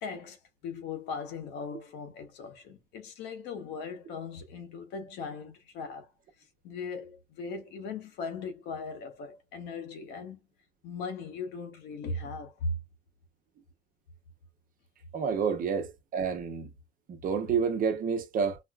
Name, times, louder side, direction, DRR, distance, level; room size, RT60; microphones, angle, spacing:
voice 1, 0.0-6.1 6.6-10.4 10.8-12.8 17.5-17.6, left 4 dB, 85° left, 0.8 m, -38 dB
voice 2, 15.1-16.7 17.1-18.6, right 6 dB, 55° right, 0.8 m, -29 dB
4.3 x 2.0 x 2.2 m
cardioid pair, 110°, 17 cm